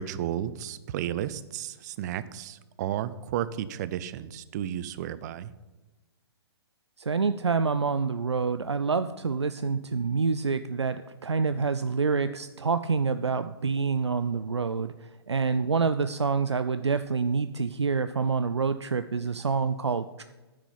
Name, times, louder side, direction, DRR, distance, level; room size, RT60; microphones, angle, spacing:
voice 1, 0.0-5.5, right 11 dB, 40° right, 16 dB, 0.7 m, -33 dB
voice 2, 7.0-14.9 15.3-20.2, right 5 dB, 90° right, 11 dB, 0.5 m, -27 dB
9.8 x 6.3 x 8.5 m, 1.1 s
figure-of-eight pair, 125°, 14 cm